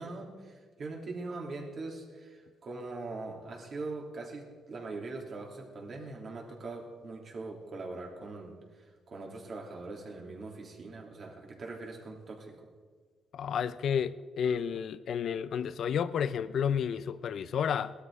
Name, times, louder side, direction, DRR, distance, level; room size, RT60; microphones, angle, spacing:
voice 1, 0.0-12.7, right 3 dB, 50° right, 3.1 m, -42 dB
voice 2, 13.3-17.9, left 7 dB, 65° left, 0.6 m, -31 dB
18.0 x 12.5 x 4.9 m
cardioid pair, 90°, 0 cm